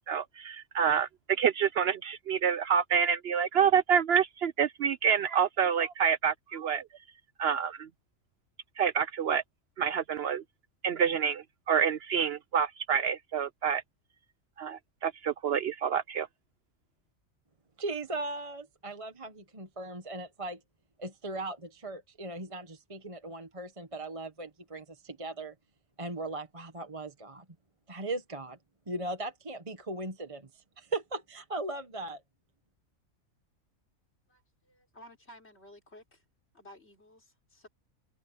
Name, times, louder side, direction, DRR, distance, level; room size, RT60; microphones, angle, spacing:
voice 1, 0.1-6.8 7.4-7.9 8.8-9.4 9.8-10.4 10.8-13.8 14.6-16.3, right 7 dB, 65° right, 0.6 m, -27 dB
voice 2, 17.8-20.6 21.0-25.5 26.0-27.4 27.9-28.6 28.9-32.2, right 2 dB, 25° right, 1.3 m, -38 dB
voice 3, 34.3-36.2 36.5-37.7, equal, 50° left, 5.4 m, -54 dB
omnidirectional pair, 1.4 m